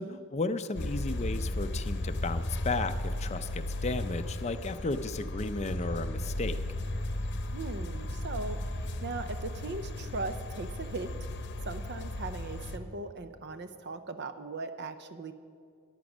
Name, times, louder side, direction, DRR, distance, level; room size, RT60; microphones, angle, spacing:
voice 1, 0.0-6.6, left 3 dB, 30° left, 9 dB, 0.5 m, -34 dB
sound 1, 0.7-12.8, left 1 dB, 50° left, 0.9 m, -35 dB
voice 2, 7.5-11.3 11.6-15.3, right 3 dB, 50° right, 9 dB, 0.6 m, -39 dB
14.0 x 10.5 x 6.1 m, 2.3 s
head